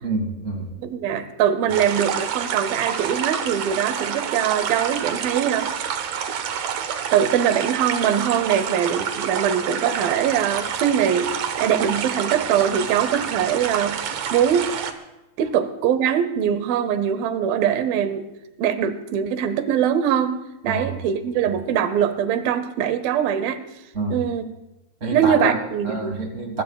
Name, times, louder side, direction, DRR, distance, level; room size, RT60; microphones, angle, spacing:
voice 1, 0.0-0.7 20.6-20.8 23.9-24.2 25.0-25.6 25.8-26.6, right 3 dB, 30° right, 3 dB, 1.5 m, -27 dB
voice 2, 0.8-5.9 7.1-11.3 11.6-14.6 15.4-18.3 18.6-20.4 20.6-23.6 24.1-24.4 25.1-26.2, right 9 dB, 85° right, 11 dB, 2.7 m, -22 dB
sound 1, 1.7-14.9, right 8 dB, 65° right, 1.7 m, -28 dB
24.0 x 19.0 x 2.3 m, 0.98 s
omnidirectional pair, 4.1 m